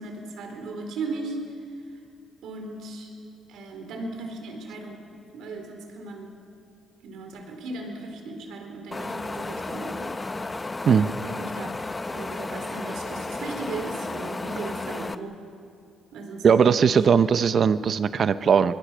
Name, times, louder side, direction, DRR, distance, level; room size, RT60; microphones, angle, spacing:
voice 1, 0.0-1.4 2.4-3.1 3.5-5.0 5.3-6.3 7.0-10.1 10.9-11.7 12.1-15.4 16.1-17.2, right 3 dB, 80° right, 4 dB, 4.3 m, -37 dB
Wind, 8.9-15.1, left 3 dB, 20° left, 0.9 m, -33 dB
voice 2, 16.4-18.7, right 6 dB, 50° right, 13 dB, 0.8 m, -19 dB
28.0 x 22.0 x 6.3 m, 2.6 s
cardioid pair, 90°, 0 cm